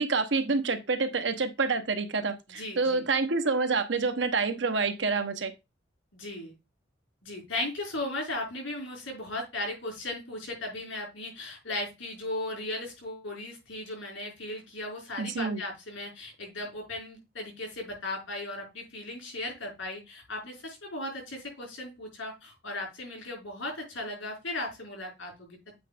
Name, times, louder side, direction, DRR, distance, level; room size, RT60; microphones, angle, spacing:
voice 1, 0.0-5.5 15.2-15.6, right 4 dB, 65° right, 1.0 m, -27 dB
voice 2, 2.5-3.1 6.1-6.5 7.2-25.6, left 2 dB, 85° left, 5.2 m, -37 dB
8.4 x 3.1 x 5.1 m
head